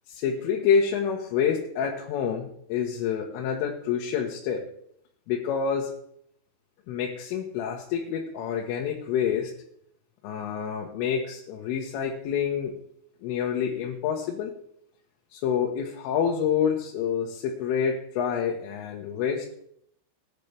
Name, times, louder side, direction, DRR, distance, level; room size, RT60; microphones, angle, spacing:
voice 1, 0.1-4.7 5.3-5.9 6.9-9.5 10.2-12.8 13.2-14.5 15.3-19.6, left 7 dB, 90° left, -1 dB, 3.7 m, -27 dB
19.5 x 10.0 x 3.4 m, 0.69 s
omnidirectional pair, 5.7 m